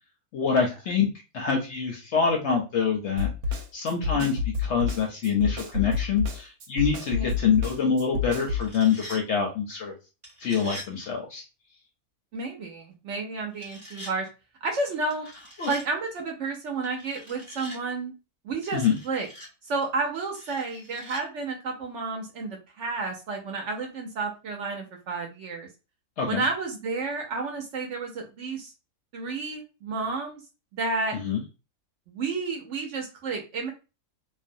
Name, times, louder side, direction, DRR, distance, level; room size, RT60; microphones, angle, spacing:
voice 1, 0.3-1.1 1.3-3.3 3.7-4.4 4.7-9.9 10.4-11.4 15.6-15.7 18.7-19.0 26.2-26.4 31.2-31.4, left 6 dB, 65° left, 1 dB, 0.7 m, -25 dB
Snare drum, 3.2-8.7, left 4 dB, 90° right, 1.1 m, -29 dB
sound 1, 8.4-9.2 10.2-10.9 13.5-14.1 15.1-15.9 16.8-17.8 18.6-19.5 20.3-21.2, left 1 dB, 25° right, 0.9 m, -44 dB
voice 2, 12.3-14.3 14.6-15.3 15.7-18.1 18.4-19.3 19.6-25.7 26.3-28.7 29.1-30.4 30.7-31.2 32.1-33.7, right 3 dB, 65° right, 1 dB, 0.8 m, -31 dB
2.5 x 2.0 x 2.5 m, 0.30 s
omnidirectional pair, 1.6 m